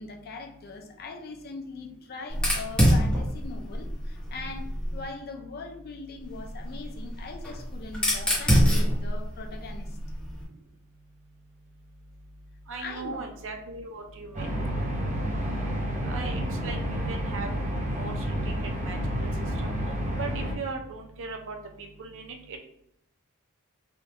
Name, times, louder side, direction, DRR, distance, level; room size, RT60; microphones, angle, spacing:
voice 1, 0.0-4.6 4.9-10.0 12.8-13.3, left 3 dB, 45° left, 3 dB, 0.5 m, -41 dB
Fire, 2.3-5.1 6.2-10.4, equal, 5° left, 0.9 m, -26 dB
voice 2, 12.7-14.6 16.0-16.8 17.1-17.5 18.0-18.2 18.5-19.3 19.6-19.7 20.2-22.6, right 4 dB, 60° right, 3 dB, 0.6 m, -38 dB
sound 1, 14.3-20.5, equal, 35° right, 0.9 m, -30 dB
3.5 x 2.3 x 2.9 m, 0.74 s
head